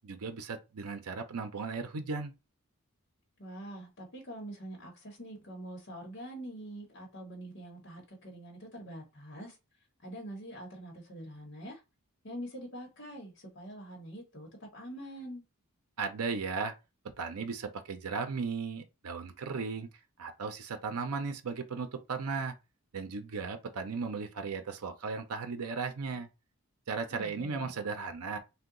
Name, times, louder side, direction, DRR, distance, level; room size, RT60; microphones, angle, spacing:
voice 1, 0.0-2.3 16.0-16.7 17.2-19.9 20.2-22.5 22.9-26.3 26.9-28.4, right 4 dB, 85° right, 0.6 m, -36 dB
voice 2, 3.4-9.6 10.0-11.8 12.2-15.4 27.1-27.7, right 1 dB, 50° left, 1.0 m, -45 dB
2.8 x 2.2 x 3.7 m
head